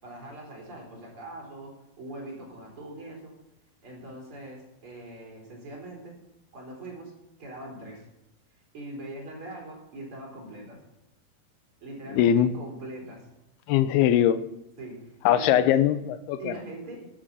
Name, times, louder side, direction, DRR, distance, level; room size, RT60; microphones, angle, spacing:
voice 1, 0.0-3.4 3.8-6.2 6.5-8.0 8.7-10.8 11.8-13.3 14.8-15.8 16.4-17.1, right 2 dB, 35° right, -1 dB, 4.7 m, -41 dB
voice 2, 12.1-12.5 13.7-14.4 15.3-16.5, left 10 dB, 85° left, 14 dB, 2.7 m, -21 dB
12.5 x 10.0 x 5.4 m, 0.88 s
omnidirectional pair, 4.5 m